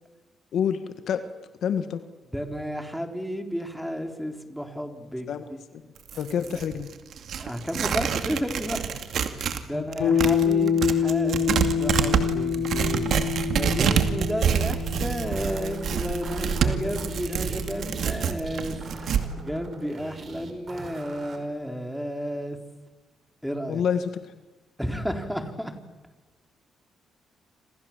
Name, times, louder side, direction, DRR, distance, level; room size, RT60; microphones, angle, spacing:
voice 1, 0.5-1.3 1.6-2.0 5.3-5.5 6.2-6.9 9.7-9.9 23.7-24.2, left 8 dB, 70° left, 10 dB, 1.8 m, -27 dB
voice 2, 2.3-5.6 7.4-9.0 9.6-18.7 19.0-22.6 23.4-23.8 24.8-25.7, equal, ahead, 5 dB, 3.9 m, -32 dB
Tearing, 6.0-9.6 9.9-19.2, right 7 dB, 65° right, 2.3 m, -27 dB
sound 1, 10.0-19.8, left 7 dB, 90° left, 5.2 m, -28 dB
sound 2, 15.2-21.4, right 4 dB, 45° right, 4.9 m, -43 dB
29.0 x 28.0 x 7.4 m, 1.1 s
cardioid pair, 90°, 0 cm